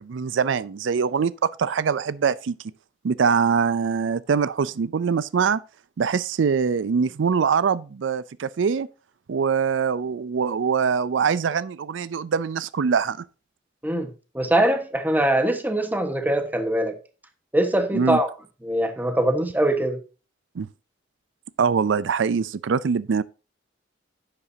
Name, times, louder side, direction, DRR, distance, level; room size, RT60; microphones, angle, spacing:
voice 1, 0.0-2.5 3.0-5.6 6.0-8.9 9.3-13.2 17.9-18.2 20.6-20.7 21.6-23.2, right 6 dB, 85° right, 0.4 m, -23 dB
voice 2, 14.3-17.0 17.5-18.3 18.6-20.0, right 1 dB, 10° right, 1.3 m, -22 dB
10.5 x 8.4 x 2.7 m
head